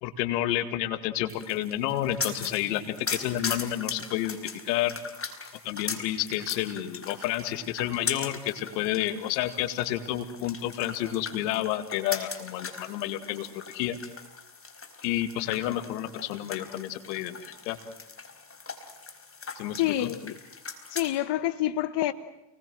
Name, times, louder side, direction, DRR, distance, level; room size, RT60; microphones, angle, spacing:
voice 1, 0.0-4.4 4.6-5.0 5.6-14.0 15.0-17.8 19.6-20.1, left 13 dB, 90° left, 2.2 m, -30 dB
sound 1, 1.3-21.1, left 5 dB, 25° left, 4.6 m, -40 dB
voice 2, 19.7-20.3 20.9-22.1, left 13 dB, 55° left, 1.3 m, -27 dB
29.5 x 21.0 x 7.7 m
supercardioid pair, 75°, 48 cm